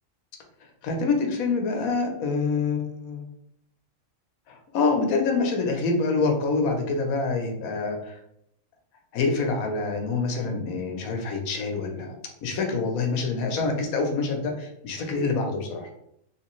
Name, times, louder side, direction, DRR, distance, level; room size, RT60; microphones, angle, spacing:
voice 1, 0.8-3.2 4.5-8.2 9.1-15.9, left 4 dB, 85° left, 3 dB, 1.2 m, -26 dB
3.2 x 3.1 x 3.0 m, 0.74 s
omnidirectional pair, 1.4 m